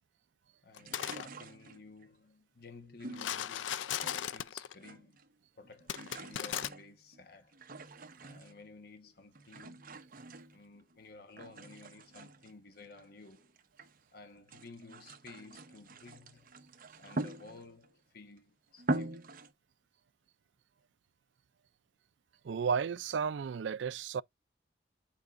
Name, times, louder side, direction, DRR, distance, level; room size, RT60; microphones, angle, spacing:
voice 1, 0.6-5.2 5.5-7.6 8.2-9.9 10.5-13.6 14.1-16.6 17.0-19.3, left 3 dB, 55° left, 1.1 m, -54 dB
sound 1, 0.8-1.3 3.1-4.8 5.9-6.7, left 10 dB, 90° left, 0.4 m, -37 dB
sound 2, 0.8-2.1 3.0-4.5 4.7-5.3 5.6-8.7 9.4-11.0 11.4-14.0 14.4-17.9 18.4-18.5 18.8-19.5, right 2 dB, 50° right, 1.0 m, -43 dB
voice 2, 22.4-24.2, right 6 dB, 75° right, 0.4 m, -33 dB
9.0 x 4.8 x 2.5 m
head